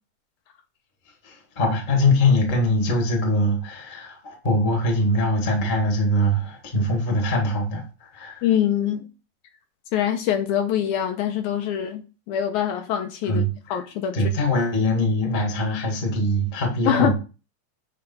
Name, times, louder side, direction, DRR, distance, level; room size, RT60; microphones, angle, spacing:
voice 1, 1.2-8.5 13.3-13.8 14.1-17.1, left 1 dB, 25° left, 1.0 m, -22 dB
voice 2, 8.4-9.1 9.9-13.4 13.7-14.3 16.9-17.1, left 9 dB, 75° left, 2.0 m, -24 dB
8.9 x 3.4 x 5.4 m
omnidirectional pair, 3.8 m